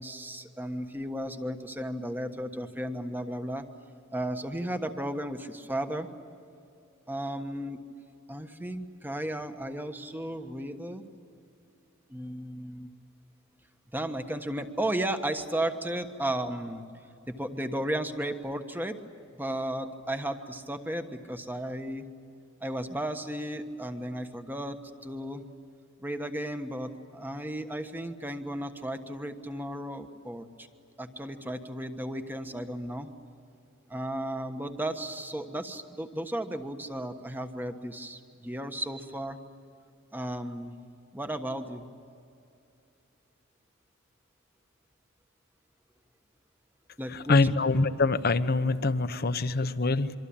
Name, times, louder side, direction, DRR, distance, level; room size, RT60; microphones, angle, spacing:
voice 1, 0.0-3.6 4.1-6.1 7.1-7.8 8.3-11.0 12.1-12.9 13.9-16.8 17.3-19.0 19.3-22.1 22.6-25.4 26.0-30.7 31.0-33.1 33.9-39.4 40.1-40.8 41.1-41.8 47.0-47.4, right 1 dB, 10° right, 7 dB, 1.3 m, -34 dB
voice 2, 47.1-50.1, left 3 dB, 50° left, 11 dB, 0.9 m, -25 dB
27.0 x 24.5 x 8.8 m, 2.5 s
head